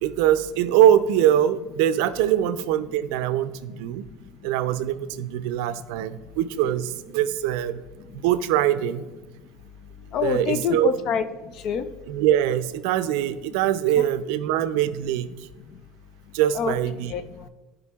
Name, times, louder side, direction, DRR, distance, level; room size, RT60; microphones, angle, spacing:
voice 1, 0.0-4.1 4.4-7.8 8.1-9.1 10.2-10.9 12.1-15.3 16.3-17.1, right 11 dB, 80° right, 12 dB, 0.4 m, -23 dB
voice 2, 10.1-11.9 14.0-14.1 15.7-15.8 16.5-16.7 17.1-17.5, left 6 dB, 45° left, 11 dB, 0.4 m, -27 dB
14.0 x 5.1 x 2.4 m, 1.2 s
cardioid pair, 165°, 0 cm